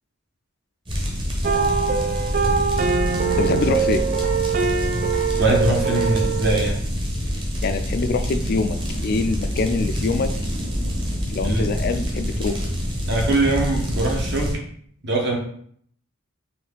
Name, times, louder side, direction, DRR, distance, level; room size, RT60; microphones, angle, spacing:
sound 1, 0.9-14.5, equal, 25° right, 0.9 m, -26 dB
sound 2, 1.4-6.7, right 6 dB, 40° right, 0.4 m, -23 dB
voice 1, 3.4-4.0 7.6-8.8 9.0-10.3 11.3-12.6, left 4 dB, 50° left, 8 dB, 0.3 m, -24 dB
voice 2, 5.3-6.8 11.4-11.7 13.1-14.6 15.0-15.4, right 2 dB, 55° right, -1 dB, 1.0 m, -22 dB
4.2 x 2.6 x 3.8 m, 0.63 s
head